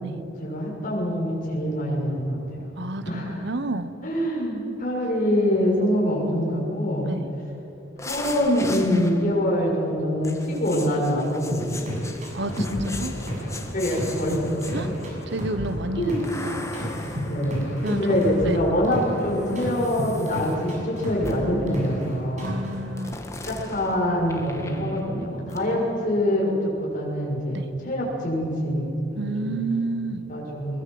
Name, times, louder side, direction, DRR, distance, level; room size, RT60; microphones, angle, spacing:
voice 1, 0.4-2.7 3.1-3.5 4.0-7.1 8.0-11.6 11.9-12.1 12.6-12.7 13.7-14.8 16.0-16.3 17.2-22.5 23.5-26.5 26.8-29.6 30.3-30.8, equal, 45° left, -4 dB, 6.8 m, -25 dB
voice 2, 2.8-3.9 7.1-7.3 12.3-13.1 14.7-14.9 15.3-16.7 17.8-18.6 22.4-23.2 27.5-27.7 29.1-30.3, right 2 dB, 65° right, 12 dB, 1.2 m, -30 dB
sound 1, 8.0-9.5 10.2-15.2 16.2-18.4 19.4-20.6 21.2-21.6 23.0-25.2 25.5-25.7, left 2 dB, 15° left, 1.6 m, -39 dB
sound 2, 11.5-13.6 13.9-16.4 16.7-19.2 19.5-22.1 22.4-22.7, equal, 40° right, 6.7 m, -31 dB
sound 3, 12.4-24.8, equal, 85° left, 4.4 m, -40 dB
22.0 x 22.0 x 8.0 m, 2.8 s
head